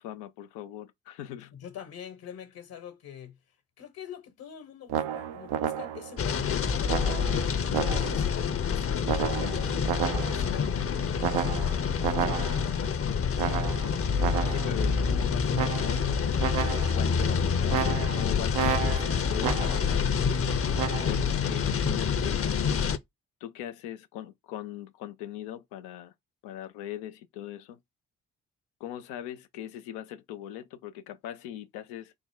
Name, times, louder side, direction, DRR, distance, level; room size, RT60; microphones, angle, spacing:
voice 1, 0.0-1.6 14.4-16.2 16.9-20.3 21.1-22.6 23.4-26.1 26.4-27.8 28.8-32.1, left 11 dB, 90° left, 0.5 m, -40 dB
voice 2, 1.5-3.4 3.8-7.3 7.8-9.7 10.0-12.6, left 9 dB, 70° left, 1.1 m, -44 dB
sound 1, 4.9-6.2 6.9-8.4 9.1-10.6 11.2-12.8 13.4-14.8 15.5-16.1 16.4-17.1 17.7-20.0 20.8-21.1, right 9 dB, 80° right, 0.5 m, -32 dB
sound 2, 6.2-23.0, left 6 dB, 35° left, 0.6 m, -27 dB
3.6 x 2.1 x 3.5 m
hypercardioid pair, 40°, 38 cm